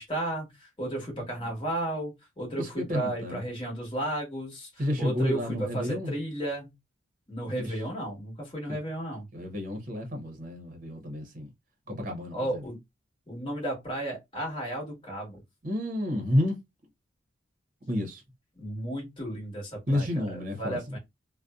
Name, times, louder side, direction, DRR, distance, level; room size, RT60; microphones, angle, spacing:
voice 1, 0.0-6.7 7.3-9.3 12.3-12.8 13.3-15.4 18.6-21.0, right 1 dB, 25° left, 1.2 m, -34 dB
voice 2, 2.6-3.4 4.8-6.1 7.6-7.7 8.7-8.8 9.3-11.5 11.9-12.6 15.6-16.6 17.9-18.2 19.9-21.0, left 1 dB, 40° right, 0.7 m, -30 dB
2.6 x 2.1 x 2.3 m
head